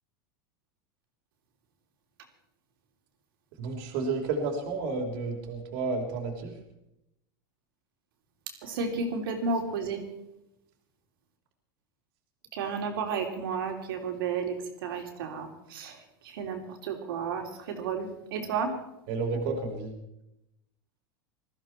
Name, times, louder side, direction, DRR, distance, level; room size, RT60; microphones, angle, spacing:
voice 1, 3.6-6.5 19.1-20.0, right 4 dB, 65° right, 1 dB, 3.2 m, -31 dB
voice 2, 8.6-10.0 12.5-14.5 14.8-16.0 16.2-18.7, right 5 dB, 80° right, 4 dB, 3.4 m, -32 dB
20.5 x 14.5 x 4.5 m, 0.86 s
hypercardioid pair, 105°, 12 cm